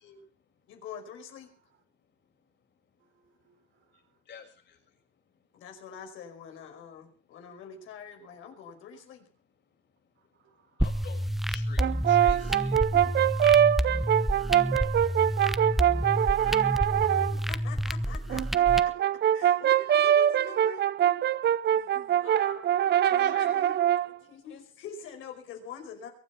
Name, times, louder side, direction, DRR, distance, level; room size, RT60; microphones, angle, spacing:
voice 1, 0.7-1.5 5.5-9.2 12.7-13.1 15.9-18.4 19.3-21.1 21.7-22.7 23.0-23.7 24.0-26.1, left 6 dB, 90° left, 5 dB, 5.2 m, -45 dB
voice 2, 3.4-3.8 8.2-8.4 10.3-11.0, right 7 dB, 80° right, 6 dB, 4.8 m, -68 dB
voice 3, 10.8-11.2 11.5-12.7 23.2-23.5, left 6 dB, 65° left, 4 dB, 6.3 m, -47 dB
sound 1, 10.8-18.8, equal, ahead, 1.1 m, -29 dB
Brass instrument, 11.8-17.4 18.3-24.1, right 10 dB, 60° right, 0.6 m, -24 dB
23.0 x 9.3 x 5.8 m, 0.40 s
cardioid pair, 90°, 20 cm